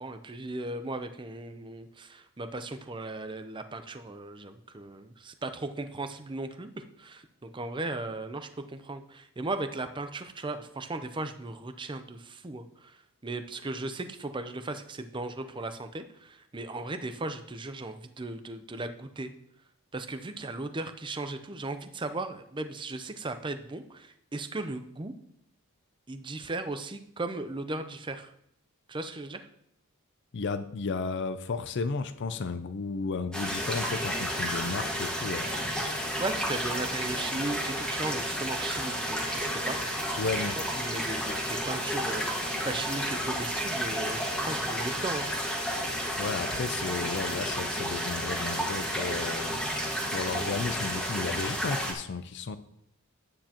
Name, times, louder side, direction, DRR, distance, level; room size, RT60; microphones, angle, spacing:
voice 1, 0.0-12.9 13.2-19.3 19.9-25.1 26.1-28.3 28.9-29.5 36.2-40.3 40.8-45.3, right 2 dB, 20° right, 0.6 m, -37 dB
voice 2, 30.3-35.5 40.2-40.6 46.2-49.6 50.1-52.6, left 4 dB, 55° left, 0.5 m, -33 dB
sound 1, 33.3-51.9, equal, 5° left, 1.6 m, -31 dB
9.9 x 9.0 x 2.9 m
head